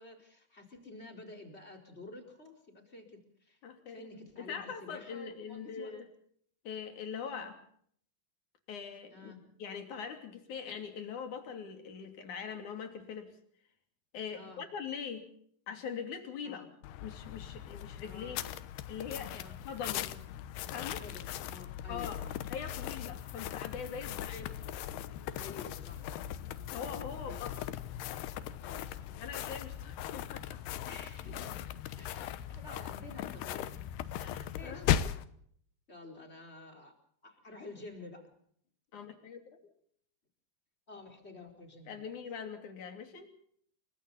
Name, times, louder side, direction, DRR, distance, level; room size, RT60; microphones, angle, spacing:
voice 1, 0.0-3.6 3.9-6.0 7.4-7.5 9.1-9.4 14.3-14.6 16.4-16.6 18.0-18.5 19.3-19.6 21.0-22.4 24.0-24.2 25.3-26.1 27.2-27.4 28.6-29.1 30.8-34.8 35.9-36.9 37.2-38.3 40.9-42.1, left 2 dB, 15° left, 3 dB, 4.3 m, -50 dB
voice 2, 3.6-4.1 4.4-6.0 6.6-7.6 8.7-9.3 9.6-13.3 14.1-15.3 15.7-16.7 17.0-18.4 18.9-20.1 20.7-21.0 21.9-22.2 22.5-24.5 26.7-27.5 29.2-30.6 34.2-34.9 38.9-39.4 41.9-43.3, left 6 dB, 50° left, 6 dB, 4.1 m, -42 dB
sound 1, 16.8-35.3, left 11 dB, 80° left, 3.0 m, -38 dB
29.5 x 23.5 x 4.2 m, 0.64 s
omnidirectional pair, 4.7 m